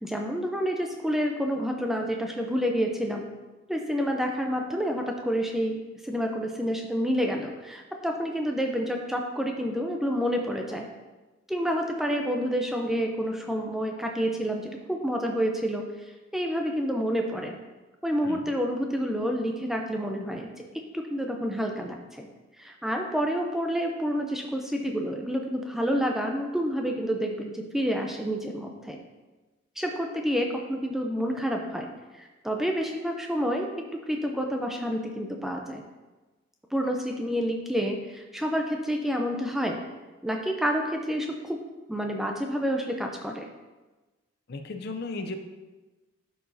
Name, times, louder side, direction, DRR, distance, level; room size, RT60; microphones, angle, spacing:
voice 1, 0.0-3.3 3.7-10.9 11.5-17.6 18.0-22.3 22.6-29.0 29.8-31.9 32.1-33.7 34.1-35.8 36.7-39.8 40.2-41.6 41.9-43.5, equal, ahead, 2 dB, 0.4 m, -29 dB
voice 2, 44.5-45.4, left 3 dB, 50° left, 6 dB, 0.5 m, -35 dB
11.5 x 4.8 x 2.7 m, 1.2 s
head